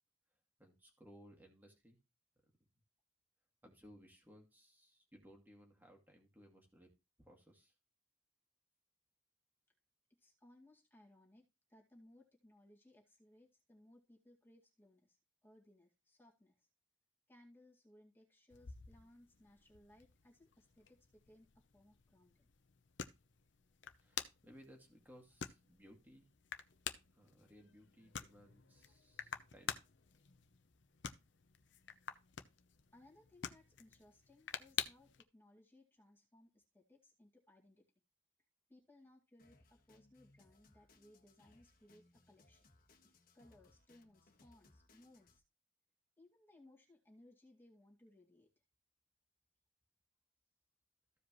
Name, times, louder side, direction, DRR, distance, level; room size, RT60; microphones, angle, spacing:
voice 1, 0.6-2.0 3.6-6.9 7.2-7.7 24.0-26.3 27.1-29.8, equal, 10° right, 1 dB, 2.2 m, -62 dB
voice 2, 10.2-16.7 17.3-22.5 32.9-37.9 38.7-42.6 43.0-45.4 46.2-48.5, left 1 dB, 10° left, -3 dB, 2.1 m, -65 dB
sound 1, 18.5-35.2, left 8 dB, 65° left, 0.8 m, -49 dB
Drum kit, 39.4-45.4, left 2 dB, 50° left, 1.5 m, -69 dB
15.0 x 5.0 x 3.1 m, 0.26 s
head